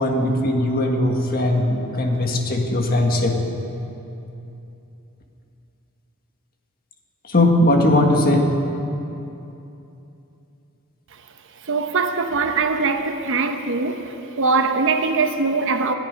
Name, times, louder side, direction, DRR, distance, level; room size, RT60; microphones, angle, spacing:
voice 1, 0.0-3.4 7.3-8.5, left 1 dB, 40° left, 2 dB, 1.6 m, -19 dB
voice 2, 11.6-15.9, right 4 dB, 60° right, 7 dB, 0.9 m, -22 dB
26.0 x 9.0 x 5.2 m, 2.9 s
head